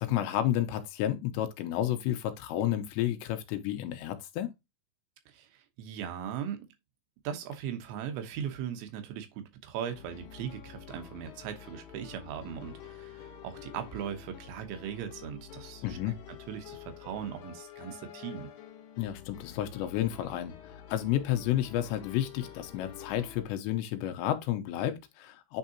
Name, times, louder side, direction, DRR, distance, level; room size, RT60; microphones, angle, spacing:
voice 1, 0.0-4.5 15.8-16.2 19.0-25.6, left 12 dB, 85° left, 3.1 m, -31 dB
voice 2, 5.3-6.7 7.2-16.1 16.5-18.5, right 9 dB, 90° right, 3.4 m, -39 dB
sound 1, 9.9-23.4, left 9 dB, 60° left, 2.2 m, -48 dB
9.1 x 3.7 x 2.8 m
omnidirectional pair, 5.1 m